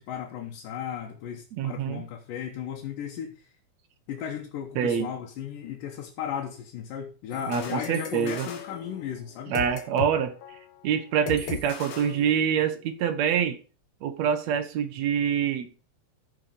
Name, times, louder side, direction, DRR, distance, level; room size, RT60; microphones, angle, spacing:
voice 1, 0.0-3.5 4.1-9.5, left 9 dB, 85° left, 2.8 m, -35 dB
voice 2, 1.5-2.0 4.8-5.1 7.5-8.5 9.5-10.4 10.8-13.6 14.0-15.7, right 8 dB, 65° right, 1.9 m, -26 dB
sound 1, 7.3-10.2 10.4-10.7 11.3-12.8, left 8 dB, 55° left, 1.4 m, -38 dB
13.5 x 5.6 x 5.0 m
omnidirectional pair, 3.8 m